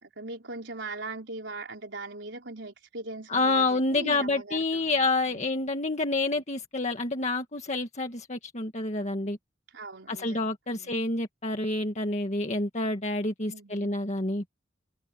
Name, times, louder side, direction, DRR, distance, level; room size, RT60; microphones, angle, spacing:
voice 1, 0.0-5.5 9.7-10.9 13.5-13.9, right 2 dB, 70° right, 5.0 m, -41 dB
voice 2, 3.3-9.4 10.1-14.4, left 2 dB, 40° left, 1.8 m, -28 dB
head